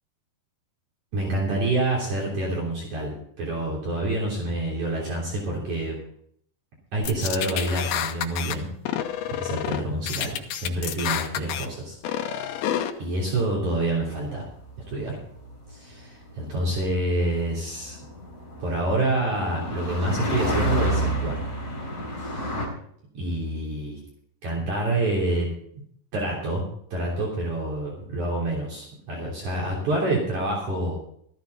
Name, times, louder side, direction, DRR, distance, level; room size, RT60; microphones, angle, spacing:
voice 1, 1.1-6.0 6.9-8.7 9.0-12.0 13.0-14.5 14.9-15.2 15.7-18.0 18.6-21.4 22.2-22.6 23.1-24.0 24.4-25.5 26.1-26.6 26.9-31.0, right 1 dB, 50° right, -4 dB, 4.7 m, -27 dB
sound 1, 7.0-8.6 8.9-9.8 10.1-11.7 12.0-12.9, left 10 dB, 85° left, 2.8 m, -28 dB
sound 2, 14.2-22.7, right 1 dB, 20° left, 3.3 m, -30 dB
14.0 x 14.0 x 4.1 m, 0.65 s
omnidirectional pair, 4.4 m